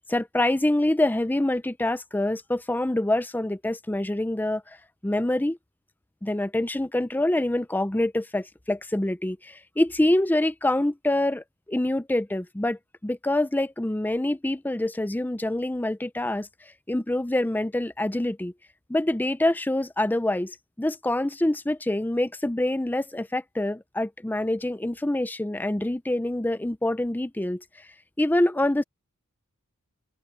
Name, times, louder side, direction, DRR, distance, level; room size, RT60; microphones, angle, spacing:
voice 1, 0.1-4.8 5.0-5.6 6.2-16.5 16.9-18.5 18.9-27.6 28.2-28.8, left 1 dB, 10° left, 0.5 m, -26 dB
open air
head